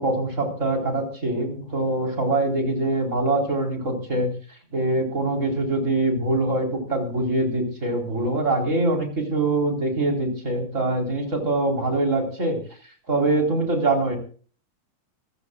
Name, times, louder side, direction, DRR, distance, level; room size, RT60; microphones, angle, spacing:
voice 1, 0.0-4.3 4.7-12.6 13.1-14.2, right 2 dB, 25° right, 1 dB, 4.3 m, -24 dB
25.5 x 15.0 x 2.4 m, 0.42 s
omnidirectional pair, 3.3 m